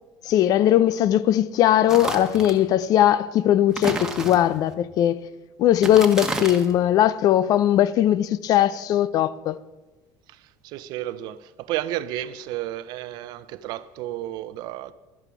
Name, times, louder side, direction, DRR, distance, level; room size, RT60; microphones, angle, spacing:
voice 1, 0.2-5.3 5.6-9.6, left 12 dB, 55° left, 0.6 m, -19 dB
sound 1, 1.9-2.6 3.7-4.7 5.7-6.8, right 2 dB, 10° right, 1.5 m, -30 dB
voice 2, 10.3-14.9, right 14 dB, 70° right, 0.7 m, -32 dB
12.0 x 9.9 x 6.1 m
cardioid pair, 120°, 8 cm